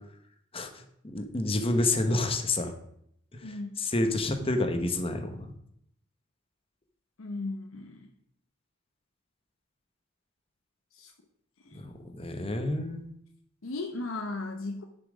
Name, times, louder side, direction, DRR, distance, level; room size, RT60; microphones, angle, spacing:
voice 1, 0.5-2.7 3.4-5.5 11.7-13.0, left 2 dB, 30° left, 6 dB, 1.1 m, -29 dB
voice 2, 7.2-8.1 10.9-11.1 11.7-11.8 13.6-14.8, left 2 dB, 90° left, 4 dB, 0.8 m, -36 dB
10.0 x 5.8 x 5.0 m, 0.70 s
head